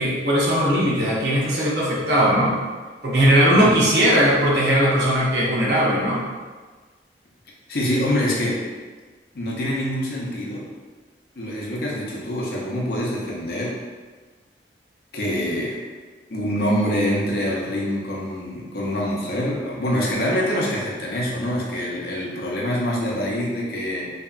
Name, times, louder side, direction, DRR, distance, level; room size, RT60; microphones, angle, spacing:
voice 1, 0.0-2.6 3.0-6.2, equal, 70° right, -5 dB, 0.7 m, -19 dB
voice 2, 7.7-8.6 9.3-10.7 11.4-13.8 15.1-15.8 16.3-24.1, equal, 60° left, -4 dB, 0.5 m, -25 dB
2.7 x 2.3 x 2.3 m, 1.4 s
head